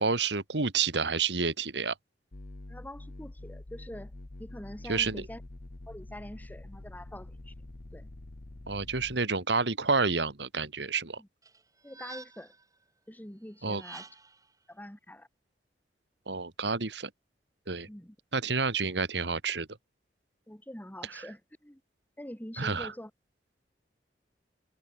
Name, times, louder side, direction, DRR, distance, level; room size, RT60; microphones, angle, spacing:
voice 1, 0.0-1.9 4.8-5.2 8.7-11.2 13.6-13.8 16.3-17.1 17.7-17.9 18.3-19.7 22.6-22.9, right 4 dB, 75° right, 2.0 m, -29 dB
sound 1, 2.3-9.2, left 1 dB, 55° left, 1.1 m, -46 dB
voice 2, 2.7-4.1 4.4-5.4 5.9-7.5 7.9-8.1 11.2-11.3 11.8-12.5 13.1-14.1 14.7-15.3 17.9-18.2 20.5-21.8 22.2-23.1, left 1 dB, 10° left, 2.2 m, -45 dB
sound 2, 11.4-12.6 13.6-14.5, right 4 dB, 20° right, 5.4 m, -48 dB
head